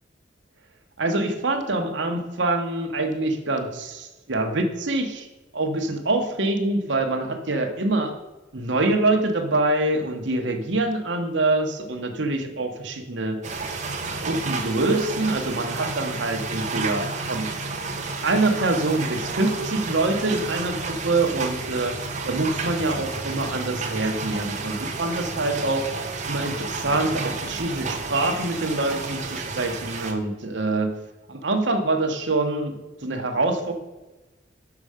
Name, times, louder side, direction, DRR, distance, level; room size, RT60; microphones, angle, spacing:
voice 1, 1.0-5.3 5.5-8.1 8.5-13.4 14.1-17.5 18.2-21.9 22.2-25.9 26.2-30.9 31.3-32.8 33.0-33.7, right 2 dB, 75° right, 4 dB, 1.1 m, -25 dB
sound 1, 13.4-30.1, right 3 dB, 40° right, 0.9 m, -31 dB
6.6 x 6.0 x 5.0 m, 1.1 s
head